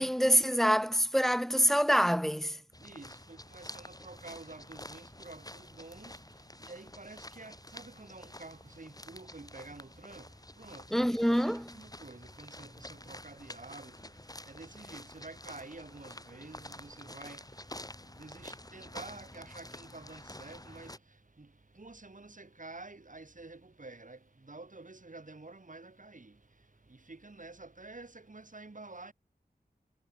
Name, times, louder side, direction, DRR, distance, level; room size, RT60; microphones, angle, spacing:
voice 1, 0.0-2.6 10.9-11.8, equal, ahead, 0.8 m, -26 dB
sound 1, 2.7-21.0, left 1 dB, 20° left, 6.3 m, -49 dB
voice 2, 2.8-11.0 11.5-29.1, right 3 dB, 50° right, 3.9 m, -50 dB
wide cardioid pair, 45°, 17 cm